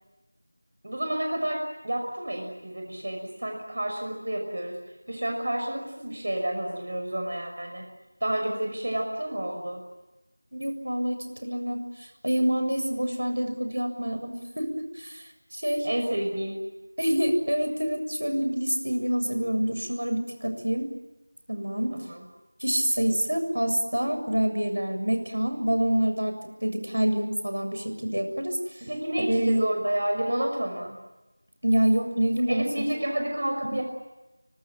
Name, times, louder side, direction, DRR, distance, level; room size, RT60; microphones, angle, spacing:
voice 1, 0.8-4.8 5.1-7.8 8.2-9.8 15.8-16.6 21.9-22.2 28.8-31.0 32.5-33.8, right 1 dB, 50° right, 2 dB, 5.9 m, -30 dB
voice 2, 10.5-11.9 12.2-15.2 15.5-15.9 17.0-20.9 21.5-22.0 22.6-26.3 26.6-28.6 29.2-29.7 31.6-32.6, right 1 dB, 85° right, 7 dB, 7.4 m, -26 dB
26.0 x 25.0 x 9.1 m, 1.0 s
figure-of-eight pair, 175°, 0 cm